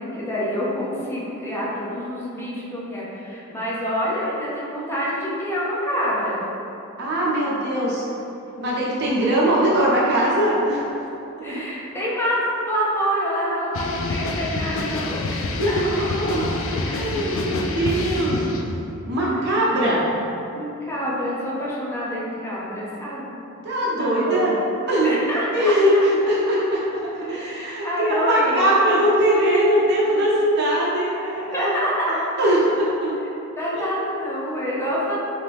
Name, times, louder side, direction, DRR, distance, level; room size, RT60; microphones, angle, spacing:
voice 1, 0.0-6.4 11.4-12.4 12.7-15.6 20.5-23.2 24.0-24.5 25.0-25.7 27.2-28.7 31.5-32.1 33.6-35.2, equal, 10° left, -7 dB, 0.7 m, -27 dB
voice 2, 7.0-8.0 8.6-10.8 11.4-11.6 15.5-18.4 19.1-20.1 23.6-24.5 24.9-25.1 25.5-27.0 27.3-31.7 32.1-33.2 33.7-33.8, right 1 dB, 50° right, -6 dB, 1.0 m, -21 dB
sound 1, 13.7-18.8, left 2 dB, 65° left, 0.3 m, -27 dB
4.0 x 2.9 x 3.5 m, 2.8 s
head